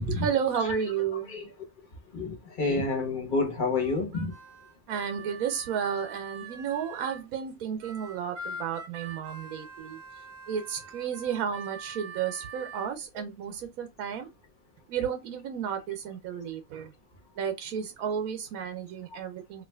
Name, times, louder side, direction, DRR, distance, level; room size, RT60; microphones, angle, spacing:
voice 1, 0.0-1.3 4.9-10.0 10.5-14.3 14.9-16.9 17.4-19.6, right 8 dB, 80° right, 1.1 m, -32 dB
voice 2, 2.1-4.3, left 3 dB, 40° left, 1.1 m, -29 dB
Harmonica, 3.8-7.3 7.8-12.9, right 3 dB, 65° right, 1.2 m, -44 dB
4.6 x 2.4 x 2.2 m
omnidirectional pair, 1.5 m